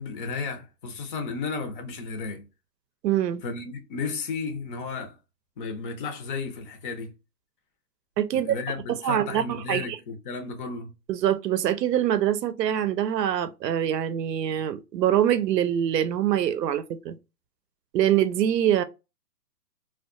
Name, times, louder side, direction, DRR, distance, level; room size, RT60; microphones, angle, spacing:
voice 1, 0.0-2.4 3.4-5.2 5.6-7.1 8.3-10.9, left 4 dB, 35° left, 0.6 m, -33 dB
voice 2, 3.0-3.4 8.2-8.6 8.9-10.0 11.1-17.2 17.9-18.8, right 10 dB, 85° right, 0.5 m, -24 dB
2.3 x 2.2 x 2.4 m
hypercardioid pair, 140°, 48 cm